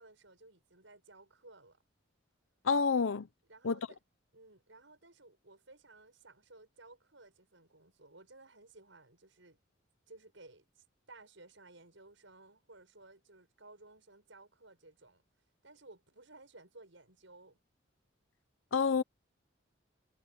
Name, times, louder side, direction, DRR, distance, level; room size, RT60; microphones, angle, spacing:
voice 1, 0.0-1.8 3.5-4.0 4.3-9.6 10.1-15.2 15.6-17.6, right 2 dB, 75° right, 6.8 m, -57 dB
voice 2, 2.6-3.3 3.6-3.8 18.7-19.0, left 5 dB, 85° left, 0.6 m, -28 dB
head